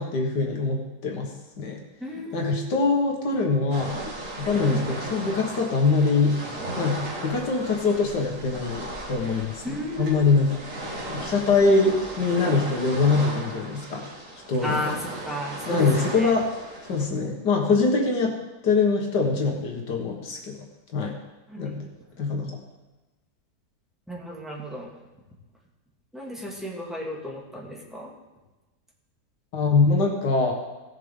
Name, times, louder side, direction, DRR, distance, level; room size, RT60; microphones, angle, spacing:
voice 1, 0.0-1.8 2.3-3.9 4.4-6.4 6.8-10.6 11.1-14.0 14.5-14.8 15.7-16.5 16.9-18.3 18.6-20.6 20.9-21.2 21.6-21.9 22.2-22.5 29.5-30.5, left 4 dB, 85° left, 1 dB, 2.0 m, -23 dB
voice 2, 2.0-2.7 4.6-4.8 9.6-10.3 14.6-16.3 21.5-21.7 24.1-24.9 26.1-28.1, equal, ahead, -3 dB, 2.0 m, -33 dB
sound 1, 3.7-17.1, right 1 dB, 50° right, 2.1 m, -36 dB
17.5 x 7.5 x 3.7 m, 1.1 s
omnidirectional pair, 1.8 m